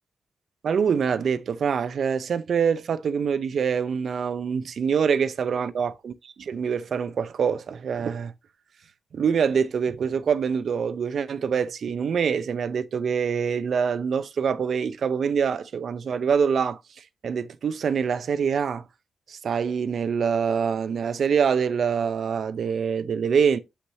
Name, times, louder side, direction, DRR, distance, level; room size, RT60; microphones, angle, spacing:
voice 1, 0.6-8.3 9.1-16.8 17.2-18.8 19.3-23.6, right 6 dB, 65° right, 0.7 m, -25 dB
7.8 x 5.8 x 2.8 m
wide cardioid pair, 115°, 0 cm